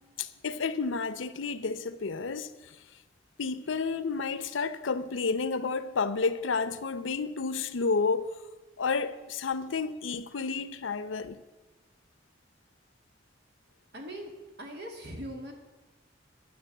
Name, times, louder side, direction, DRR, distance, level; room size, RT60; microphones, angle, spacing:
voice 1, 0.2-2.5 3.4-8.3 8.8-11.4, left 4 dB, 90° left, 0.7 m, -31 dB
voice 2, 13.9-14.3 14.6-15.5, equal, 60° right, 2.2 m, -40 dB
11.5 x 6.7 x 7.8 m
head